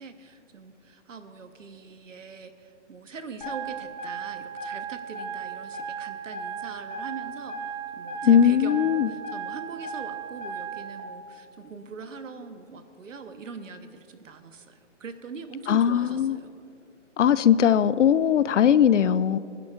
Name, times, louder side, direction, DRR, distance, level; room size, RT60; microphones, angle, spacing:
voice 1, 0.0-7.6 7.9-16.5, right 5 dB, 90° right, 1.1 m, -42 dB
sound 1, 3.4-11.0, right 5 dB, 40° left, 1.7 m, -36 dB
voice 2, 8.2-9.1 15.7-16.4 17.2-19.4, left 9 dB, 75° left, 0.5 m, -19 dB
24.5 x 10.5 x 2.4 m
hypercardioid pair, 175°, 37 cm